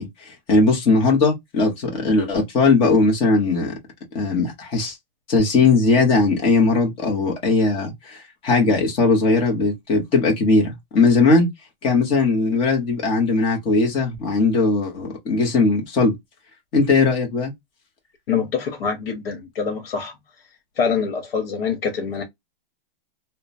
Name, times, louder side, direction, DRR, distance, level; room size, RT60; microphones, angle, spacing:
voice 1, 0.0-3.7 4.1-4.9 5.3-8.2 8.4-11.5 11.8-16.1 16.7-17.5, left 3 dB, 20° left, 0.8 m, -19 dB
voice 2, 18.3-20.1 20.8-22.2, left 6 dB, 65° left, 1.1 m, -25 dB
2.9 x 2.1 x 2.4 m
supercardioid pair, 165°, 29 cm